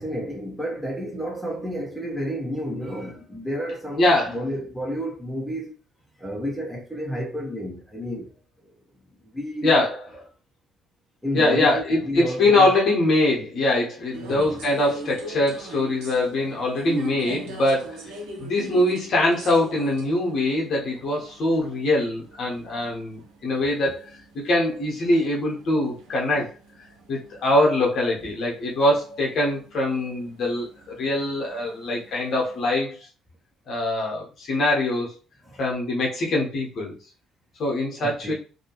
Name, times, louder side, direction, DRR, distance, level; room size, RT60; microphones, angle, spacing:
voice 1, 0.0-5.7 6.2-8.4 8.6-8.8 9.2-9.7 11.2-12.7 14.2-14.6 17.2-17.6 26.3-26.4 28.2-28.3 35.4-35.6 38.0-38.3, equal, ahead, 1.0 m, -31 dB
voice 2, 4.0-4.4 9.6-10.0 11.3-18.1 18.4-24.0 24.3-26.5 27.1-33.0 33.7-35.2 35.6-36.9 37.6-38.3, left 1 dB, 50° left, 1.1 m, -23 dB
sound 1, 14.1-32.7, right 2 dB, 65° right, 0.6 m, -41 dB
2.7 x 2.6 x 3.0 m
figure-of-eight pair, 45°, 0 cm